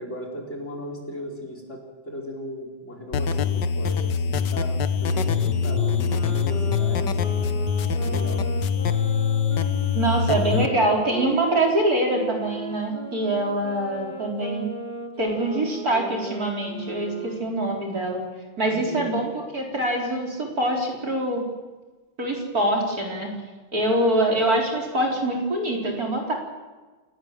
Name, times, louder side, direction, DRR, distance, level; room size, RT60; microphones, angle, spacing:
voice 1, 0.0-7.6 7.9-8.4 18.6-19.2, equal, 35° left, 1 dB, 5.0 m, -37 dB
sound 1, 3.1-10.7, left 6 dB, 65° left, 1.7 m, -24 dB
Wind instrument woodwind instrument, 5.6-11.4 12.1-17.6, right 1 dB, 25° right, 2.7 m, -37 dB
voice 2, 9.9-14.7 15.2-18.2 18.6-21.4 22.2-23.3 23.7-26.3, right 1 dB, 45° right, 0 dB, 4.4 m, -24 dB
28.5 x 18.5 x 7.4 m, 1.3 s
omnidirectional pair, 2.2 m